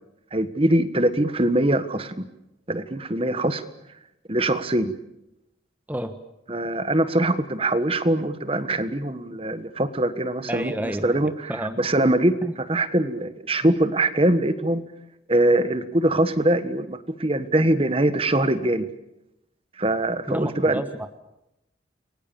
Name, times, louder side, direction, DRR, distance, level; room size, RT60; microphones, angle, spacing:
voice 1, 0.3-2.2 2.7-3.6 4.3-4.9 6.5-10.7 11.0-12.4 12.7-14.8 15.3-18.9 19.8-20.8, right 1 dB, 30° right, 11 dB, 1.5 m, -22 dB
voice 2, 10.5-11.8 12.4-12.5 20.3-21.1, right 1 dB, 10° right, 8 dB, 1.3 m, -30 dB
29.5 x 23.0 x 7.1 m, 0.86 s
head